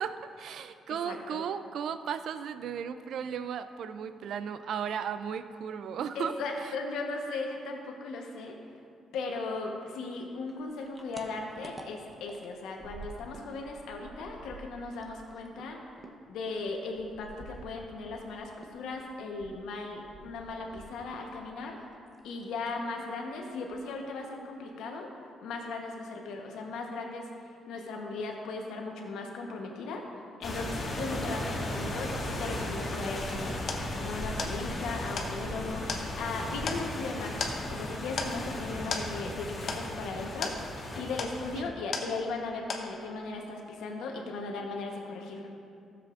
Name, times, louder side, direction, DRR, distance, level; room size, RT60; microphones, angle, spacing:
voice 1, 0.0-6.7 41.5-41.6, right 7 dB, 70° right, 11 dB, 0.4 m, -35 dB
voice 2, 1.0-1.4 6.1-8.6 9.1-15.8 16.3-21.8 22.2-25.1 25.4-30.0 30.4-40.7 41.0-45.5, left 3 dB, 85° left, 1 dB, 1.1 m, -37 dB
sound 1, 10.4-13.5 13.8-18.3 18.6-21.3 21.6-22.3 22.6-22.9 23.2-23.3 23.6-24.1, right 2 dB, 20° right, 0.9 m, -49 dB
sound 2, 30.4-41.6, left 1 dB, 40° left, 1.7 m, -36 dB
sound 3, 33.7-42.4 42.7-43.3, left 4 dB, 60° left, 1.0 m, -38 dB
13.5 x 7.5 x 2.5 m, 2.4 s
cardioid pair, 90°, 0 cm